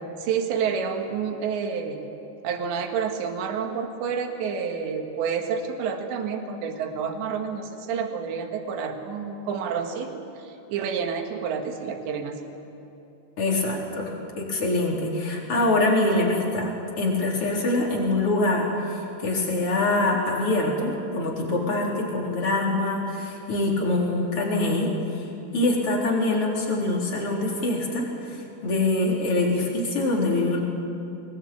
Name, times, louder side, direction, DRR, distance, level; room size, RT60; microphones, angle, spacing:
voice 1, 0.2-2.1 2.4-12.4, right 6 dB, 70° right, 4 dB, 4.0 m, -29 dB
voice 2, 13.4-25.3 25.5-30.6, left 2 dB, 30° left, -2 dB, 4.5 m, -24 dB
25.0 x 20.5 x 8.9 m, 2.9 s
omnidirectional pair, 5.5 m